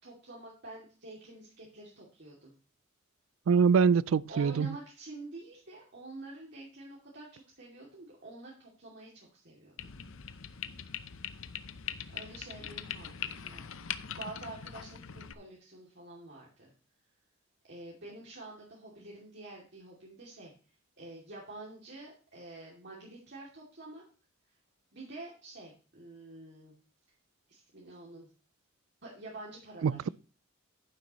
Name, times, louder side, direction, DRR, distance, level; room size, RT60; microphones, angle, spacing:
voice 1, 0.0-2.5 4.3-9.7 12.1-13.7 14.1-16.7 17.6-20.5 21.0-24.0 24.9-26.7 27.5-28.3 29.0-30.1, right 2 dB, 55° right, 2.7 m, -48 dB
voice 2, 3.5-4.7 29.8-30.1, right 6 dB, 75° right, 0.4 m, -24 dB
sound 1, 9.8-15.3, left 8 dB, 70° left, 0.7 m, -41 dB
11.0 x 9.8 x 3.1 m
head